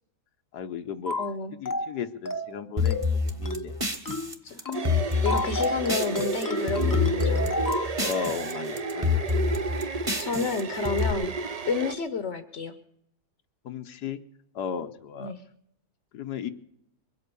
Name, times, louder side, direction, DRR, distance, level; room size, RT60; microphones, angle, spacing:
voice 1, 0.5-1.2 1.6-3.7 8.0-9.2 13.6-14.2 14.5-15.3 16.1-16.5, left 7 dB, 85° left, 8 dB, 1.5 m, -35 dB
sound 1, 1.1-1.3 1.7-1.9 2.3-2.5 2.9-3.1 3.5-3.7 4.1-4.3 4.7-4.9 5.3-7.9, left 1 dB, 25° left, 0.5 m, -31 dB
voice 2, 1.2-1.6 4.4-4.8 5.1-7.5 10.2-12.7 15.2-15.4, left 4 dB, 50° left, 10 dB, 1.1 m, -31 dB
sound 2, 2.8-6.4 6.7-8.5 8.8-11.1, left 4 dB, 20° right, 1.5 m, -27 dB
sound 3, 4.7-12.0, right 4 dB, 40° right, 0.5 m, -32 dB
23.0 x 8.5 x 6.9 m, 0.75 s
omnidirectional pair, 1.7 m